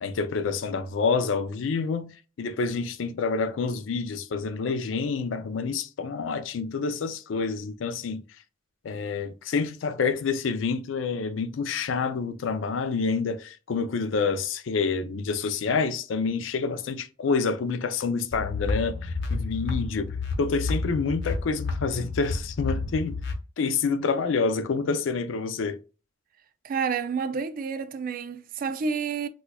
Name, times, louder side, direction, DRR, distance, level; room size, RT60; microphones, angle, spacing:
voice 1, 0.0-8.2 8.8-23.2 23.6-25.8, left 4 dB, 85° left, 0.4 m, -28 dB
sound 1, 18.3-23.3, left 3 dB, 65° left, 0.7 m, -30 dB
voice 2, 26.6-29.3, right 5 dB, 45° right, 0.3 m, -29 dB
4.1 x 2.3 x 2.2 m
head